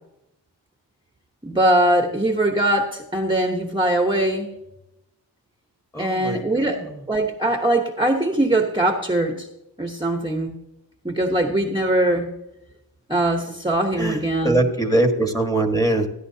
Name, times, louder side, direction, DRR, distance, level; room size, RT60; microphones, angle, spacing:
voice 1, 1.4-4.5 6.0-6.8 7.1-9.5 9.8-10.5 11.0-12.3 13.1-14.6, right 1 dB, 10° right, 2 dB, 1.1 m, -21 dB
voice 2, 5.9-6.8 14.0-14.2 14.4-16.1, right 2 dB, 5° left, 4 dB, 1.6 m, -22 dB
14.5 x 10.5 x 2.8 m, 0.87 s
cardioid pair, 60°, 46 cm